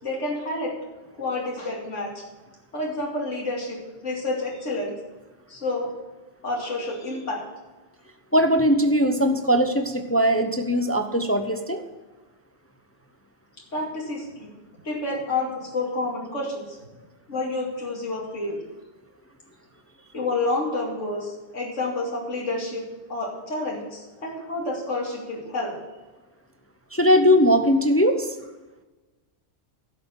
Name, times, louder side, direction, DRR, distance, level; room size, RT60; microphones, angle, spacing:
voice 1, 0.0-0.7 1.1-2.3 2.7-4.9 5.5-5.9 6.4-7.4 13.7-14.5 14.8-16.8 17.3-18.6 20.1-22.8 23.1-25.7, left 2 dB, 70° left, -3 dB, 2.7 m, -29 dB
voice 2, 8.3-11.8 26.9-28.3, equal, 15° left, 7 dB, 0.6 m, -20 dB
11.5 x 7.7 x 6.0 m, 1.2 s
omnidirectional pair, 1.3 m